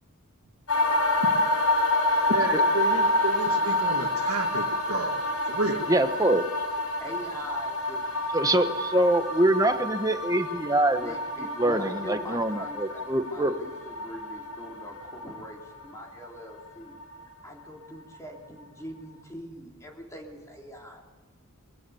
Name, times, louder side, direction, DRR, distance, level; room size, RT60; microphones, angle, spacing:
sound 1, 0.7-16.7 16.9-17.0, left 1 dB, 90° left, 4.7 m, -28 dB
voice 1, 2.3-5.2 5.5-5.8, right 3 dB, 70° right, -3 dB, 2.1 m, -31 dB
voice 2, 5.9-6.5 8.3-13.6, right 1 dB, 15° right, 8 dB, 1.2 m, -25 dB
voice 3, 7.0-8.2 11.0-16.9 17.4-21.0, equal, 15° left, 0 dB, 3.5 m, -42 dB
22.5 x 20.5 x 7.2 m, 1.2 s
head